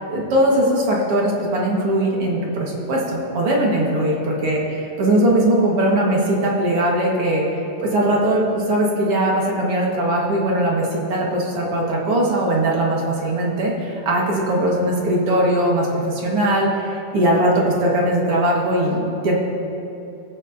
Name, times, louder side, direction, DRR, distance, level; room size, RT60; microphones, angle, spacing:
voice 1, 0.1-7.4 7.8-19.4, right 1 dB, 45° right, -3 dB, 2.3 m, -20 dB
24.5 x 8.7 x 2.8 m, 2.9 s
omnidirectional pair, 4.2 m